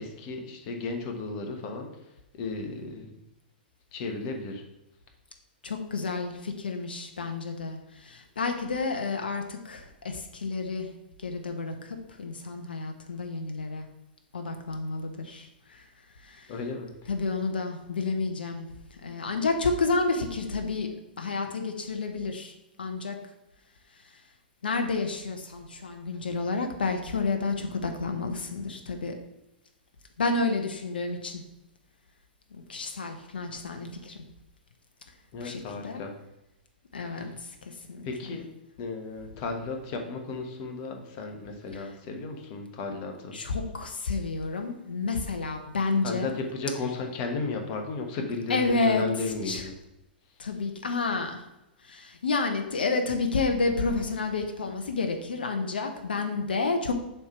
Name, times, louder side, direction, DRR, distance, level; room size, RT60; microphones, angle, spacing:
voice 1, 0.0-3.1 3.9-4.7 16.5-17.1 35.3-36.1 37.0-37.3 38.0-38.4 38.8-43.4 46.0-49.7, left 3 dB, 40° left, 4 dB, 1.3 m, -34 dB
voice 2, 5.6-10.9 11.2-13.9 14.3-15.8 16.2-16.5 17.1-18.7 19.0-20.9 21.2-22.5 22.8-23.1 24.6-29.1 30.2-31.4 32.5-34.2 35.4-36.0 36.9-38.1 43.3-46.3 48.5-49.0 49.5-49.6 50.4-51.4 51.8-56.9, left 3 dB, 70° left, 5 dB, 0.8 m, -30 dB
7.0 x 3.4 x 6.0 m, 0.91 s
figure-of-eight pair, 105°, 5 cm